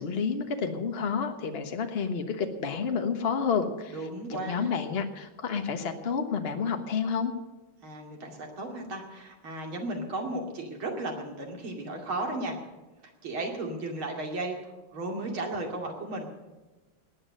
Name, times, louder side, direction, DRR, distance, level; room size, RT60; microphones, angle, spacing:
voice 1, 0.0-4.0 4.3-7.3, left 6 dB, 35° left, 5 dB, 1.3 m, -30 dB
voice 2, 3.9-4.7 7.8-12.6 13.2-16.5, right 2 dB, 80° right, 1 dB, 3.3 m, -35 dB
18.0 x 9.7 x 6.5 m, 1.2 s
omnidirectional pair, 2.2 m